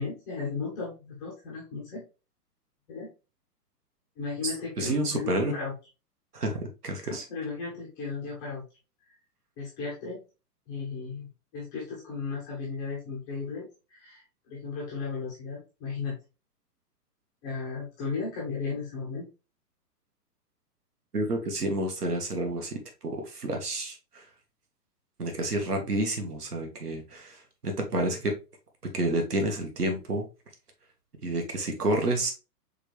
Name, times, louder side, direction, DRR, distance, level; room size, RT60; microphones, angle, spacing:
voice 1, 0.0-2.0 2.9-3.1 4.2-5.7 7.0-8.6 9.6-10.2 10.7-16.2 17.4-19.3 25.7-25.8, left 4 dB, 10° left, -4 dB, 0.5 m, -35 dB
voice 2, 4.8-5.5 6.3-7.2 21.1-24.3 25.2-28.4 28.9-30.2 31.2-32.3, right 1 dB, 70° right, 3 dB, 1.6 m, -29 dB
4.7 x 3.3 x 3.2 m, 0.30 s
figure-of-eight pair, 115°, 48 cm